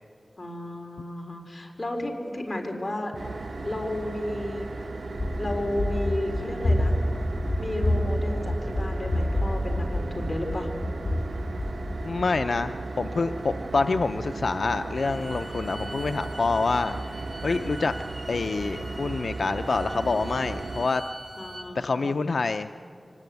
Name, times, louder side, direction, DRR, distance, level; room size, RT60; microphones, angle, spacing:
voice 1, 0.4-3.1 3.6-4.8 5.4-6.9 7.6-10.7 21.4-22.2, left 1 dB, 40° left, 2 dB, 4.1 m, -33 dB
sound 1, 3.1-20.9, right 3 dB, 75° right, 1.1 m, -36 dB
Run, 5.1-12.1, left 1 dB, 60° left, 7.2 m, -28 dB
voice 2, 12.0-17.9 18.3-21.0 21.7-22.7, left 4 dB, 85° left, 9 dB, 0.5 m, -27 dB
Bowed string instrument, 14.9-21.7, right 1 dB, 30° right, 4.3 m, -43 dB
24.5 x 19.5 x 9.3 m, 2.6 s
wide cardioid pair, 80°, 0 cm